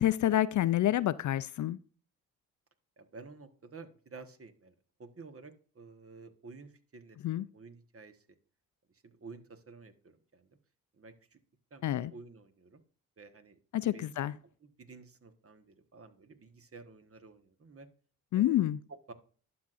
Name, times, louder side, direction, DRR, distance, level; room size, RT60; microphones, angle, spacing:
voice 1, 0.0-1.8 7.2-7.5 11.8-12.1 13.7-14.3 18.3-18.8, left 13 dB, 50° left, 0.4 m, -28 dB
voice 2, 3.0-8.3 9.0-10.5 10.9-11.4 11.7-12.8 13.2-13.6 13.9-14.1 14.6-17.9 18.3-19.1, right 4 dB, 35° right, 1.3 m, -52 dB
11.5 x 6.1 x 2.5 m
supercardioid pair, 50°, 39 cm